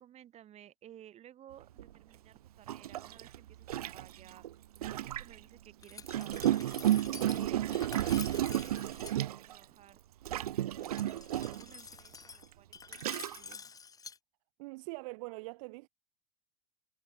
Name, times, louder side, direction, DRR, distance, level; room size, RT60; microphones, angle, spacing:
voice 1, 0.0-4.5 4.8-6.9 7.3-10.0 10.3-13.7, right 11 dB, 35° right, 4.0 m, -57 dB
Gurgling, 1.8-1.9 2.7-5.4 6.0-9.6 10.3-11.7 12.4-12.5 12.9-13.5, right 12 dB, 90° right, 1.1 m, -32 dB
Glass, 5.8-9.2 10.8-14.2, left 6 dB, 20° left, 2.2 m, -49 dB
voice 2, 14.6-15.9, right 26 dB, 65° right, 1.5 m, -43 dB
supercardioid pair, 115°, 19 cm